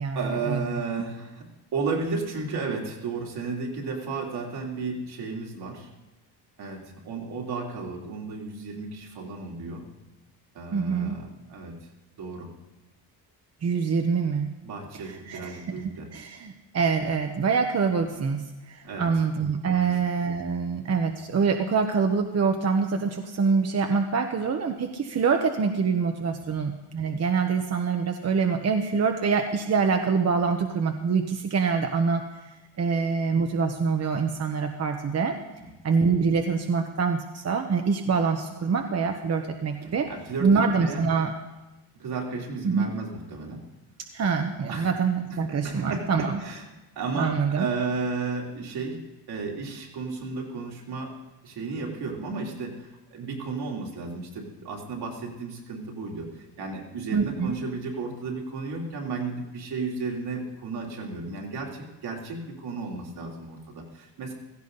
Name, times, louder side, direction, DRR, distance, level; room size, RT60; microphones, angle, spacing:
voice 1, 0.1-5.9 6.6-9.9 10.5-11.7 12.2-12.5 14.6-16.1 18.8-19.1 19.7-19.9 35.6-35.7 39.8-41.1 42.0-43.6 44.7-44.9 45.3-46.6 46.9-51.1 51.4-64.3, right 4 dB, 70° right, -1 dB, 3.3 m, -33 dB
voice 2, 10.7-11.2 13.6-14.5 15.0-15.8 16.1-32.2 32.8-35.4 35.8-40.1 40.4-41.3 42.6-42.9 44.1-46.4 47.1-47.7 57.1-57.5, right 5 dB, 40° right, 4 dB, 1.1 m, -25 dB
16.5 x 15.0 x 4.0 m, 1.1 s
cardioid pair, 110°, 39 cm